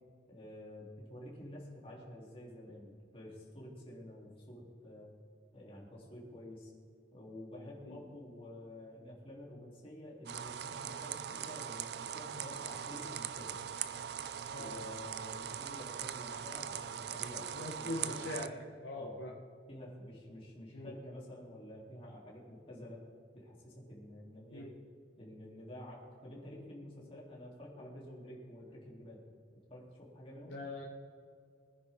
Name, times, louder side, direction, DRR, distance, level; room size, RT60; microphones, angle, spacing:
voice 1, 0.3-5.1 5.5-6.7 7.1-13.6 14.6-17.5 17.8-18.3 18.9-19.3 19.7-23.0 23.3-24.7 25.2-29.2 29.7-30.5, left 1 dB, 30° left, -4 dB, 3.3 m, -50 dB
sound 1, 10.3-18.5, right 9 dB, 65° right, 0.5 m, -41 dB
voice 2, 17.5-19.3 20.7-20.9 24.5-24.7 30.4-30.8, left 1 dB, 90° left, -2 dB, 1.3 m, -42 dB
20.5 x 10.0 x 3.7 m, 2.2 s
head